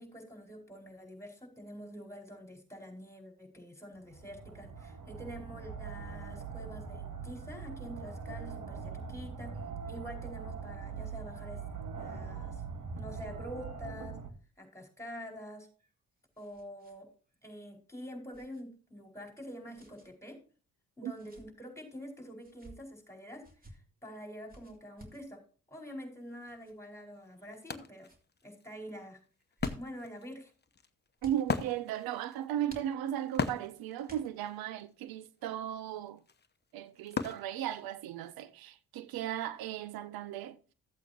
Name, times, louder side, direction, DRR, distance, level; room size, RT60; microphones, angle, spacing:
voice 1, 0.0-11.6 11.9-12.6 13.0-14.2 14.6-15.7 16.4-17.1 17.4-20.4 21.0-25.4 25.7-28.1 28.4-29.2 29.7-30.5, equal, 5° left, 4.7 m, -46 dB
sound 1, 3.9-14.3, right 5 dB, 55° right, 1.6 m, -42 dB
sound 2, 15.6-17.0 17.3-17.4 18.3-18.6 19.7-20.1 21.0-21.5 22.3-22.8 23.4-23.7 24.5-25.2 26.4-26.7 27.4-27.7 28.0-28.2 29.3-30.1 31.2-31.4 32.7-33.3 34.0-34.6, equal, 25° right, 2.8 m, -53 dB
Wood, 26.6-26.7 27.1-38.3, left 5 dB, 30° left, 1.0 m, -40 dB
voice 2, 31.2-36.2 36.7-40.6, right 11 dB, 75° right, 0.6 m, -36 dB
14.0 x 8.2 x 2.9 m
hypercardioid pair, 45°, 36 cm